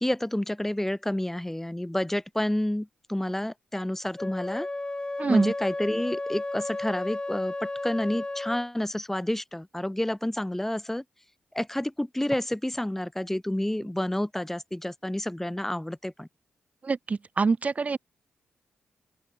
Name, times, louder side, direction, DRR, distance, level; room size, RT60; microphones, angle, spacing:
voice 1, 0.0-4.7 5.3-11.0 11.5-16.3, left 1 dB, 10° left, 1.0 m, -29 dB
Wind instrument woodwind instrument, 4.2-8.7, left 2 dB, 25° left, 1.4 m, -33 dB
voice 2, 5.2-5.5 16.8-18.0, right 4 dB, 40° right, 0.5 m, -25 dB
open air
hypercardioid pair, 40°, 4 cm